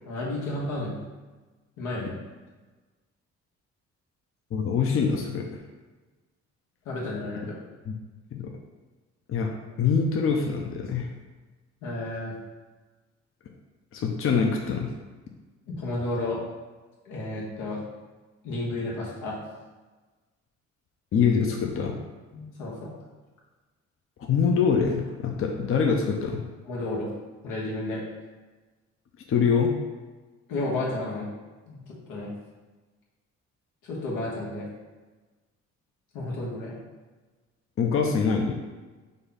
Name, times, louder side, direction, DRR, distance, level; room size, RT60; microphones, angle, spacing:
voice 1, 0.1-1.0 1.8-2.1 6.8-7.6 11.8-12.3 15.7-16.4 17.0-17.8 18.4-19.4 22.3-22.9 26.7-27.1 27.4-28.0 30.5-31.3 31.7-31.8 32.1-32.3 33.8-34.7 36.1-36.7, left 2 dB, 90° left, -5 dB, 1.3 m, -32 dB
voice 2, 4.5-5.4 7.8-7.9 8.3-8.5 9.3-9.5 9.8-11.1 13.9-14.9 21.1-21.9 24.3-26.4 29.3-29.7 37.8-38.5, left 6 dB, 45° left, 1 dB, 0.6 m, -24 dB
5.2 x 2.3 x 4.0 m, 1.3 s
cardioid pair, 90°, 30 cm